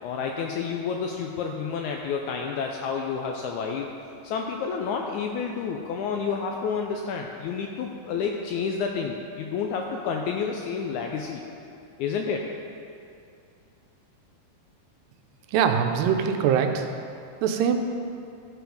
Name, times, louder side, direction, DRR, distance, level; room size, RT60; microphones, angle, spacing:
voice 1, 0.0-3.9 4.2-11.4 12.0-12.5, left 6 dB, 80° left, 1 dB, 1.7 m, -30 dB
voice 2, 15.5-16.9 17.4-17.8, right 7 dB, 85° right, 5 dB, 2.3 m, -22 dB
12.5 x 4.8 x 5.1 m, 2.5 s
omnidirectional pair, 3.9 m